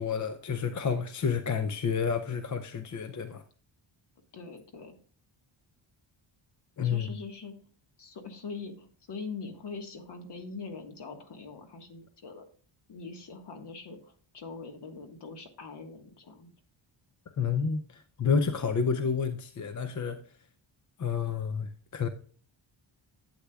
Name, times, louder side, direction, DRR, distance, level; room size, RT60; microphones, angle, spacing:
voice 1, 0.0-3.4 6.8-7.2 17.4-20.2 21.0-22.1, left 6 dB, 40° left, 0.6 m, -30 dB
voice 2, 4.3-5.0 6.8-7.5 8.0-12.4 12.9-16.5, left 4 dB, 55° left, 1.6 m, -43 dB
11.5 x 8.2 x 2.3 m
wide cardioid pair, 165°, 48 cm